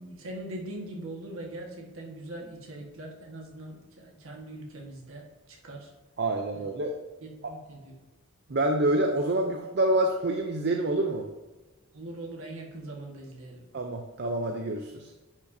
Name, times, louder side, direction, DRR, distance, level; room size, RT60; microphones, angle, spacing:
voice 1, 0.0-5.9 6.5-6.7 7.2-7.9 11.9-13.6, right 1 dB, 65° right, 0 dB, 1.6 m, -41 dB
voice 2, 6.2-7.0 7.4-7.5 8.5-11.3 13.7-15.1, right 1 dB, 50° right, 3 dB, 0.6 m, -27 dB
10.0 x 5.8 x 2.7 m, 1.2 s
head